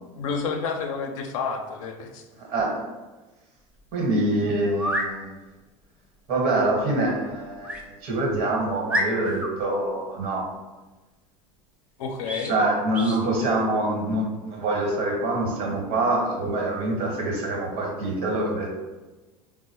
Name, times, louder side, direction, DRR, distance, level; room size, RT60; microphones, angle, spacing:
voice 1, 0.1-2.2 12.0-12.6, left 5 dB, 75° left, 4 dB, 0.5 m, -30 dB
voice 2, 2.4-2.8 3.9-5.3 6.3-10.5 12.5-18.8, right 2 dB, 55° right, 0 dB, 1.1 m, -25 dB
sound 1, 3.8-3.9 4.7-5.1 7.6-7.8 8.4-8.5 8.9-9.5 12.2-12.5 12.9-13.2, equal, 10° right, 0.6 m, -28 dB
3.9 x 2.1 x 2.8 m, 1.2 s
hypercardioid pair, 95°, 17 cm